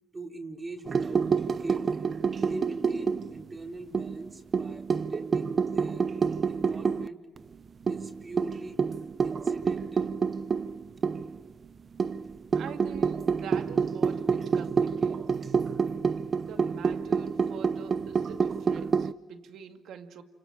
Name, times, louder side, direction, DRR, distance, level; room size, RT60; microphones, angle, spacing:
voice 1, 0.1-1.9 2.5-6.1 6.5-7.3 7.9-8.8 9.2-10.1, right 2 dB, 30° right, 4.3 m, -41 dB
sound 1, 0.8-3.5 3.9-7.1 7.4-7.5 7.9-11.4 12.0-19.1, right 5 dB, 45° right, 0.8 m, -28 dB
voice 2, 12.5-15.4 16.4-20.2, right 7 dB, 75° right, 2.3 m, -45 dB
29.5 x 27.0 x 7.5 m
cardioid pair, 75°, 0 cm